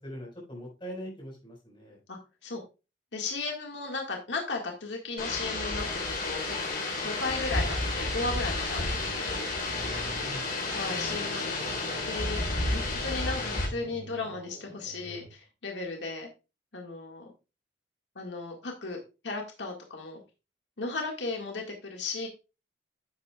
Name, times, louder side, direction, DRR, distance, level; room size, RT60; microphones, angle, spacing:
voice 1, 0.0-2.0 10.2-10.5, equal, 25° left, -1 dB, 4.8 m, -42 dB
voice 2, 2.1-2.6 3.1-6.6 7.0-9.5 10.7-12.4 12.7-16.3 16.7-17.3 18.2-19.0 19.2-20.2 20.8-22.3, left 3 dB, 75° left, 1 dB, 1.8 m, -35 dB
sound 1, 5.2-13.7, left 2 dB, 55° left, 3.9 m, -31 dB
sound 2, 7.8-15.3, equal, 80° right, 2.2 m, -46 dB
11.0 x 8.3 x 2.4 m, 0.29 s
head